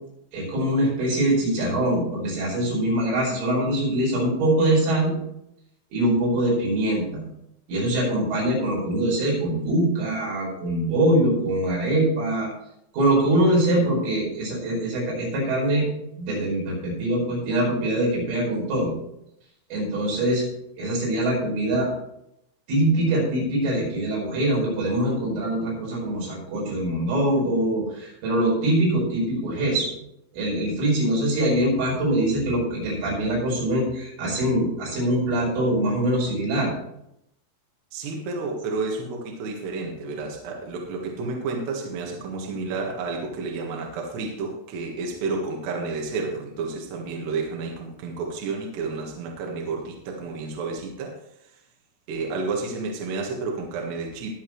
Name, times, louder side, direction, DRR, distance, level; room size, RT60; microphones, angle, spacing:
voice 1, 0.3-5.1 5.9-7.2 7.7-12.5 12.9-15.9 16.2-18.9 19.7-20.4 20.8-21.9 22.7-29.9 30.3-36.7, right 1 dB, 85° right, -4 dB, 7.8 m, -23 dB
voice 2, 37.9-51.2 51.4-51.6 52.1-54.3, right 3 dB, 65° right, -1 dB, 3.5 m, -31 dB
21.5 x 7.3 x 3.2 m, 0.80 s
omnidirectional pair, 5.5 m